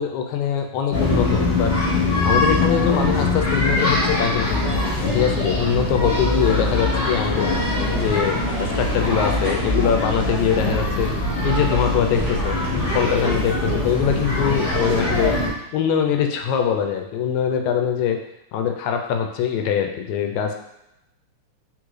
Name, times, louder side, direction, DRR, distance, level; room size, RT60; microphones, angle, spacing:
voice 1, 0.0-1.7 2.2-4.7 5.0-7.5 7.9-11.1 11.4-15.3 15.7-18.2 18.5-20.6, left 8 dB, 80° left, 4 dB, 1.9 m, -23 dB
Urban Playground, 0.9-15.5, left 2 dB, 50° left, 1.4 m, -22 dB
sound 1, 7.5-13.2, equal, 90° right, 0.3 m, -37 dB
4.4 x 3.6 x 3.1 m, 0.85 s
omnidirectional pair, 3.4 m